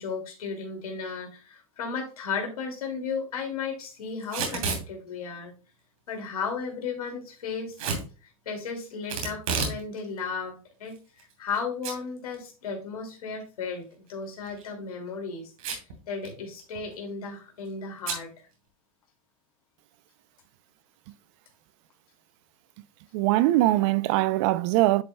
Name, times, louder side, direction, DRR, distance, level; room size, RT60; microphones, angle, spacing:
voice 1, 0.0-5.5 6.1-7.8 8.2-10.9 11.4-15.5 16.1-18.3, left 5 dB, 85° left, 2.4 m, -34 dB
Packing tape duct tape / Tearing, 4.2-4.9 7.8-8.1 9.1-9.8 10.2-10.3 11.0-11.6 11.8-11.9 12.3-12.4 14.4-14.7 15.6-16.0 16.3-16.4 16.6-16.9 18.0-18.2, right 5 dB, 75° right, 2.9 m, -30 dB
voice 2, 23.1-25.0, right 16 dB, 55° right, 0.5 m, -22 dB
10.0 x 5.2 x 2.2 m
hypercardioid pair, 115°, 18 cm